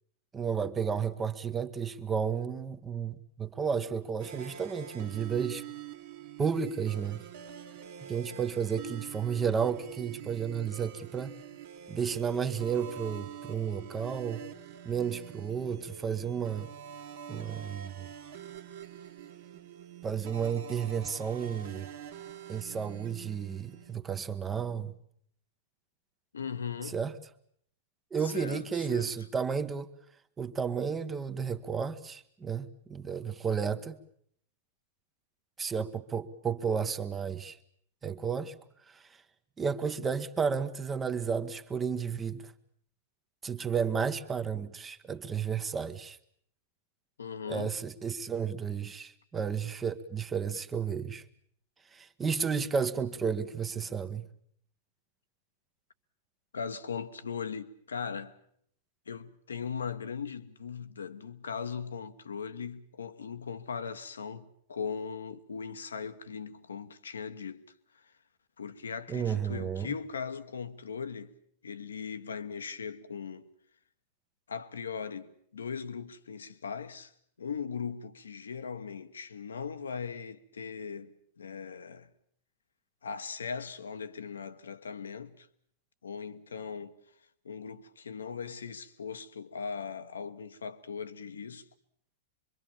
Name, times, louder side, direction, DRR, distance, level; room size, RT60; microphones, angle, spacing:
voice 1, 0.3-5.6 6.4-7.2 8.0-11.3 11.9-14.5 14.8-16.7 17.3-18.1 20.0-21.9 22.5-25.0 26.8-27.1 28.1-29.9 30.4-34.0 35.6-37.6 38.0-38.5 38.9-39.2 39.6-42.5 43.4-46.2 47.5-51.2 51.9-54.3 69.1-69.9, right 6 dB, 20° right, 1.3 m, -32 dB
sound 1, 4.2-23.9, right 9 dB, 55° right, 2.0 m, -46 dB
voice 2, 26.3-27.0 28.2-29.1 47.2-47.7 56.5-58.4 59.1-67.6 67.9-68.0 68.6-71.3 71.6-73.5 74.5-77.1 77.4-82.1 83.0-85.5 86.0-86.9 87.4-91.7, left 6 dB, 70° left, 1.3 m, -39 dB
25.5 x 23.5 x 7.3 m
figure-of-eight pair, 100°, 0 cm